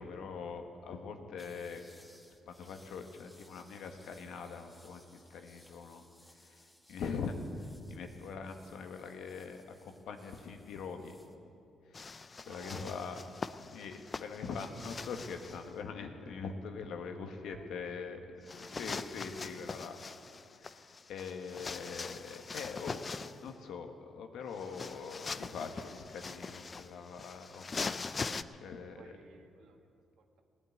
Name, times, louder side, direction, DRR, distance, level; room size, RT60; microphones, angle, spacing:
voice 1, 0.0-1.8 2.5-11.1 11.8-13.2 13.7-20.0 20.5-29.0, left 5 dB, 80° left, 5 dB, 1.5 m, -43 dB
sound 1, 1.4-11.4, left 1 dB, 5° left, 1.4 m, -63 dB
sound 2, 11.9-15.7 18.5-23.5 24.5-28.4, left 4 dB, 35° left, 0.4 m, -42 dB
voice 2, 12.4-13.0 14.7-15.1 17.4-18.0 28.6-29.9 30.2-30.4, right 6 dB, 75° right, 4 dB, 1.6 m, -56 dB
18.0 x 8.6 x 9.3 m, 2.6 s
cardioid pair, 90°, 0 cm